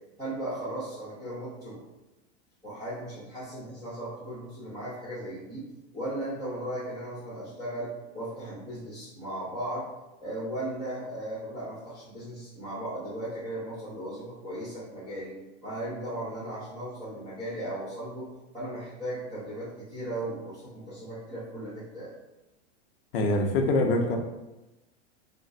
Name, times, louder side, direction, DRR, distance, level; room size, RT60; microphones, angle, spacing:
voice 1, 0.2-1.8 2.6-5.7 5.9-9.9 10.2-15.4 15.6-18.3 18.5-22.1, right 1 dB, 10° right, -14 dB, 0.8 m, -36 dB
voice 2, 23.1-24.2, left 2 dB, 55° left, 3 dB, 0.5 m, -24 dB
2.5 x 2.2 x 3.6 m, 1.0 s
supercardioid pair, 170°, 36 cm